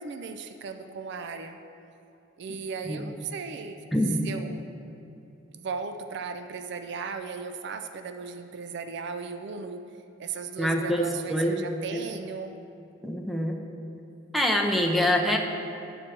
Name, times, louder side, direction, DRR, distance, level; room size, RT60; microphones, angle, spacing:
voice 1, 0.0-1.6 2.4-3.8 4.2-4.6 5.5-9.9 10.2-12.5, right 5 dB, 60° right, 7 dB, 0.4 m, -36 dB
voice 2, 3.9-4.3 10.6-11.7 11.9-12.0 13.0-13.6 14.3-15.4, left 1 dB, ahead, 2 dB, 0.6 m, -25 dB
9.2 x 4.4 x 6.2 m, 2.7 s
head